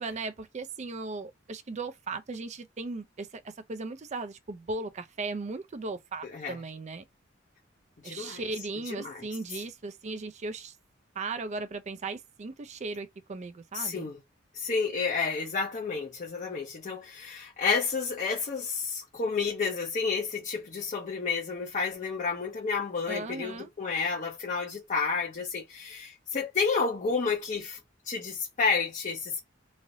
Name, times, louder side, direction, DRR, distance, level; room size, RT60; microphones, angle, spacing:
voice 1, 0.0-7.0 8.0-10.8 11.2-14.1 23.1-23.7, right 3 dB, 35° right, 0.4 m, -37 dB
voice 2, 6.2-6.6 8.0-8.4 8.8-9.3 13.7-14.2 14.5-27.8 28.0-29.4, left 5 dB, 40° left, 0.6 m, -30 dB
3.2 x 2.5 x 2.6 m
head